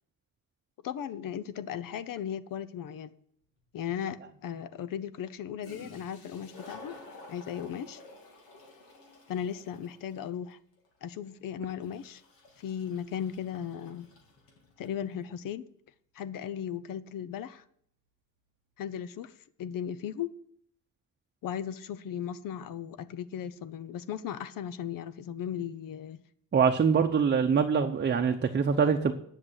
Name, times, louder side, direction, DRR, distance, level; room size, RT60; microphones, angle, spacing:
voice 1, 0.8-3.1 3.7-6.9 7.3-8.0 9.3-10.6 11.0-12.2 12.6-14.1 14.8-15.6 16.1-17.6 18.8-19.3 19.6-20.3 21.4-26.2, left 9 dB, 70° left, 0.8 m, -36 dB
Toilet flush, 3.6-3.7 5.3-5.4 5.6-15.0, left 2 dB, 90° left, 3.3 m, -52 dB
voice 2, 26.5-29.1, right 6 dB, 30° right, 0.8 m, -24 dB
10.0 x 6.7 x 8.0 m
cardioid pair, 120°, 34 cm